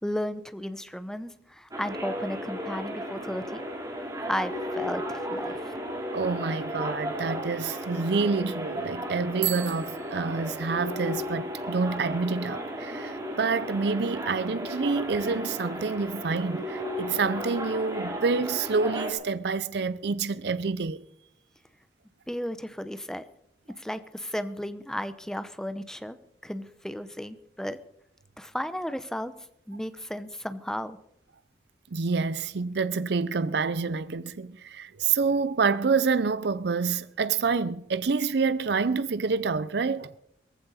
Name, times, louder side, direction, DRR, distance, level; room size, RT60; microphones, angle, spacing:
voice 1, 0.0-3.7 4.3-5.8 22.3-23.2 23.7-26.2 26.4-27.8 28.4-29.3 29.7-31.0, equal, 5° left, 0.7 m, -34 dB
sound 1, 1.7-19.1, equal, 20° right, 3.0 m, -35 dB
voice 2, 6.1-21.0 31.9-40.1, right 4 dB, 60° right, 0.5 m, -27 dB
Bicycle bell, 9.3-11.1, right 14 dB, 80° right, 2.0 m, -35 dB
18.5 x 15.0 x 4.2 m
head